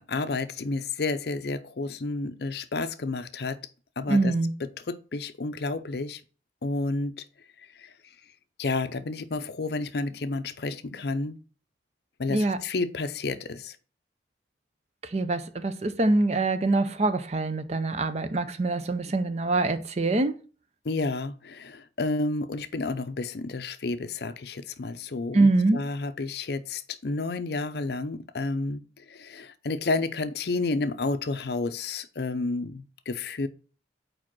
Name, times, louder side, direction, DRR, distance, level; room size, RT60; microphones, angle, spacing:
voice 1, 0.0-3.6 4.0-4.3 4.9-6.2 6.6-7.2 7.6-7.9 8.6-11.4 12.2-13.8 20.8-33.5, left 3 dB, 60° left, 0.5 m, -31 dB
voice 2, 4.1-4.5 12.3-12.6 15.1-20.3 25.3-25.8, right 2 dB, 35° right, 0.5 m, -24 dB
4.9 x 4.7 x 6.0 m
head